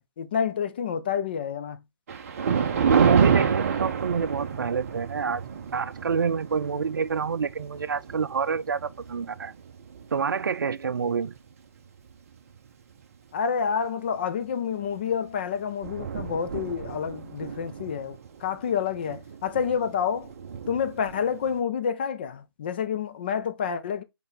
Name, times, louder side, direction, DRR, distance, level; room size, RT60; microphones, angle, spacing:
voice 1, 0.0-1.8 13.3-20.3 20.7-24.0, left 7 dB, 25° left, 0.5 m, -28 dB
Thunder, 2.1-10.6 11.1-11.4 12.1-12.2 12.5-12.6 14.8-15.0 15.3-15.4 15.6-21.6, right 7 dB, 35° right, 0.8 m, -29 dB
voice 2, 2.9-5.4 5.7-9.5 10.1-11.3, right 6 dB, 55° right, 0.5 m, -27 dB
5.4 x 4.6 x 3.8 m
figure-of-eight pair, 155°, 13 cm